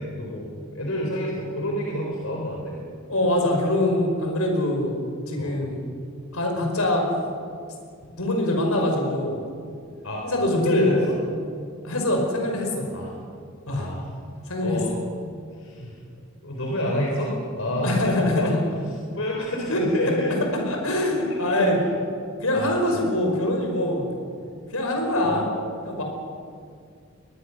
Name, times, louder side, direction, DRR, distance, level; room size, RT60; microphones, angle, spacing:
voice 1, 0.0-2.8 5.4-5.6 10.0-10.2 10.6-11.2 12.9-13.1 13.7-14.1 14.6-14.9 15.6-15.9 16.4-18.0 18.4-18.5 19.2-20.3 21.3-21.6 22.5-22.7 25.2-25.4, left 1 dB, 70° left, -2 dB, 4.1 m, -28 dB
voice 2, 3.1-5.8 6.3-7.1 8.2-9.4 10.2-11.0 11.8-12.9 13.7-13.9 14.5-14.8 15.8-15.9 17.8-18.6 19.7-19.8 20.5-21.8 22.4-24.1 24.7-25.4 25.8-26.0, left 1 dB, 85° left, 2 dB, 5.5 m, -23 dB
22.5 x 21.5 x 6.5 m, 2.2 s
head